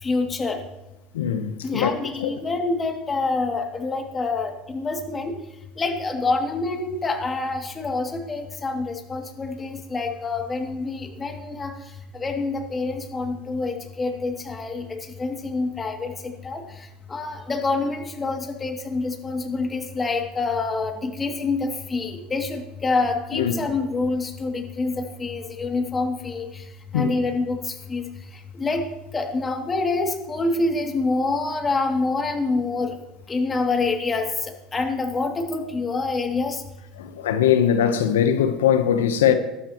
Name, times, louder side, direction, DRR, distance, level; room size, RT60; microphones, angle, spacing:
voice 1, 0.0-0.6 1.6-5.4 5.8-11.7 12.1-26.6 26.9-28.0 28.5-28.9 29.1-33.0 33.3-36.6, left 3 dB, 25° left, 2.6 m, -26 dB
voice 2, 1.1-1.9 2.2-2.3 23.4-23.5 26.9-27.1 37.0-39.3, left 9 dB, 90° left, 1.0 m, -21 dB
19.0 x 12.5 x 3.1 m
hypercardioid pair, 85°, 0 cm